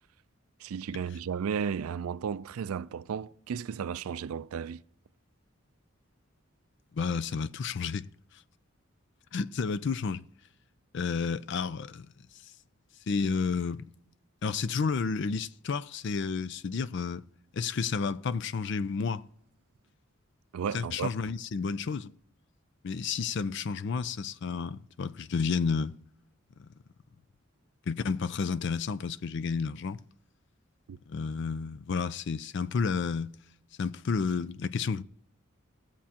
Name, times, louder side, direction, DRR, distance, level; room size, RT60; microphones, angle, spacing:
voice 1, 0.6-4.8 20.5-21.1 30.9-31.0, right 7 dB, 85° right, 0.4 m, -34 dB
voice 2, 6.9-8.0 9.3-10.2 10.9-12.1 13.1-13.9 14.4-17.2 17.5-19.2 20.7-22.1 22.8-26.0 27.9-30.0 31.1-33.3 33.8-35.0, left 5 dB, 55° left, 0.4 m, -31 dB
18.5 x 7.3 x 2.8 m
head